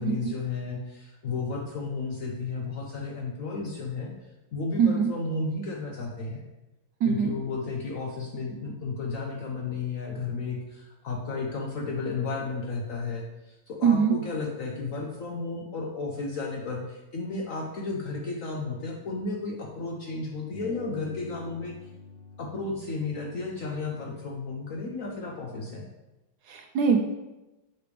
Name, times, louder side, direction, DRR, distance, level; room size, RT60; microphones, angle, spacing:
voice 1, 0.0-4.1 4.5-6.5 7.1-21.7 22.4-25.9, left 3 dB, 60° left, 0 dB, 0.9 m, -33 dB
voice 2, 4.8-5.1 7.0-7.3 13.8-14.1 26.5-27.0, right 6 dB, 70° right, 1 dB, 1.0 m, -22 dB
sound 1, 20.5-25.7, left 4 dB, 5° left, 0.8 m, -49 dB
6.7 x 3.2 x 5.0 m, 1.0 s
omnidirectional pair, 2.0 m